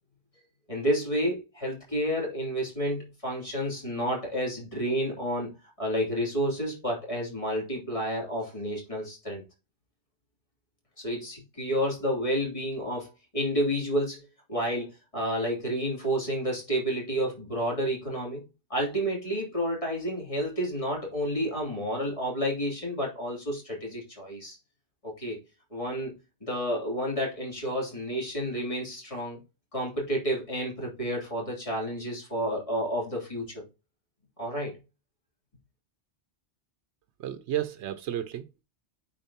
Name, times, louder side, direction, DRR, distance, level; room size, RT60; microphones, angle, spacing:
voice 1, 0.7-5.5 5.8-9.4 11.0-14.2 14.5-18.4 18.7-24.6 25.0-25.4 25.7-26.2 26.4-29.4 29.7-33.6 34.4-34.8, equal, 30° left, 3.0 m, -30 dB
voice 2, 37.2-38.6, right 11 dB, 85° right, 0.9 m, -32 dB
8.9 x 4.4 x 2.8 m
omnidirectional pair, 1.1 m